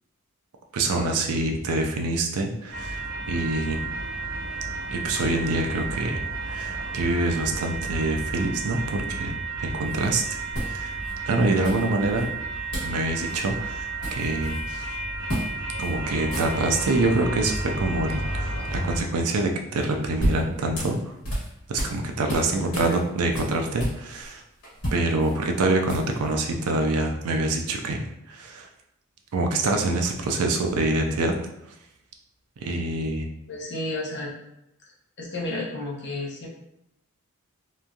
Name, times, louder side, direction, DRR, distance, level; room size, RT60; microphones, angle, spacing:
voice 1, 0.7-3.0 3.3-3.8 4.9-10.2 10.5-11.0 11.3-12.3 12.8-15.0 15.8-21.1 21.7-24.4 24.9-28.7 29.3-31.4 32.6-33.3, right 2 dB, 80° right, 3 dB, 0.4 m, -26 dB
sound 1, 2.7-19.0, right 3 dB, 60° right, 1.1 m, -32 dB
sound 2, 9.8-10.0 10.5-11.1 11.6-12.3 12.7-13.0 13.3-13.5 13.8-14.7 15.3-15.5 15.8-15.9 16.2-16.9 19.8-22.0 22.3-24.3 24.6-26.3, equal, 75° left, 1.2 m, -32 dB
voice 2, 22.5-23.0 33.5-34.3 35.2-36.5, left 2 dB, 50° left, -3 dB, 0.7 m, -31 dB
3.0 x 2.5 x 2.3 m, 0.84 s
head